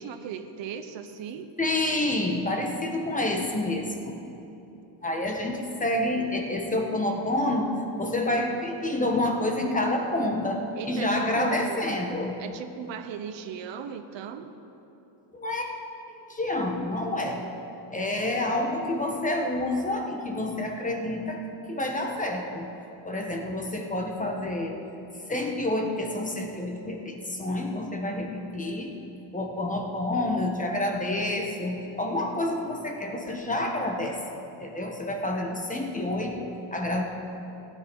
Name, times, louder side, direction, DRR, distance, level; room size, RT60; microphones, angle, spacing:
voice 1, 0.0-1.5 10.8-11.8 12.4-14.5, right 8 dB, 60° right, 8 dB, 0.9 m, -37 dB
voice 2, 1.6-4.2 5.0-12.4 15.3-15.7 16.1-17.4 17.9-21.4 21.7-22.7 23.0-24.8 25.3-28.9 29.3-34.2 34.6-37.0, left 1 dB, 15° left, 2 dB, 1.2 m, -28 dB
16.0 x 9.9 x 4.6 m, 3.0 s
cardioid pair, 140°, 50 cm